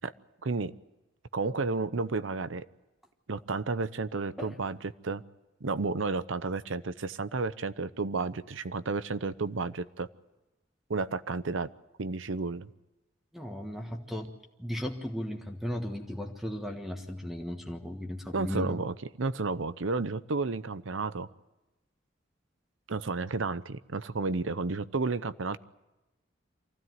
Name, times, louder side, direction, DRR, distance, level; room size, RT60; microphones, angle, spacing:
voice 1, 0.4-0.7 1.3-2.6 3.3-4.8 5.0-5.2 5.6-10.1 10.9-11.7 12.0-12.7 18.3-21.3 22.9-25.6, right 3 dB, 80° right, 14 dB, 0.8 m, -32 dB
voice 2, 13.3-14.3 14.6-18.8, left 1 dB, ahead, 3 dB, 1.5 m, -36 dB
24.5 x 16.0 x 9.3 m, 1.1 s
head